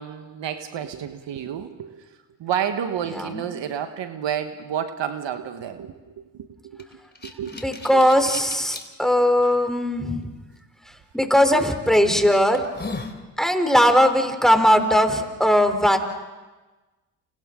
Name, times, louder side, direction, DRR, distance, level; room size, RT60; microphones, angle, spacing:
voice 1, 0.0-2.0 2.4-5.9 6.3-6.9 7.2-7.5 7.9-8.1, right 9 dB, 60° right, 8 dB, 1.5 m, -30 dB
voice 2, 3.0-3.5 7.5-10.2 11.1-12.6 13.4-16.0, equal, ahead, 6 dB, 3.6 m, -19 dB
sound 1, 6.8-8.9 9.5-9.6 11.3-11.5 12.1-12.2 12.5-13.2, left 3 dB, 20° left, 3.2 m, -36 dB
30.0 x 29.0 x 3.8 m, 1.2 s
hypercardioid pair, 50°, 49 cm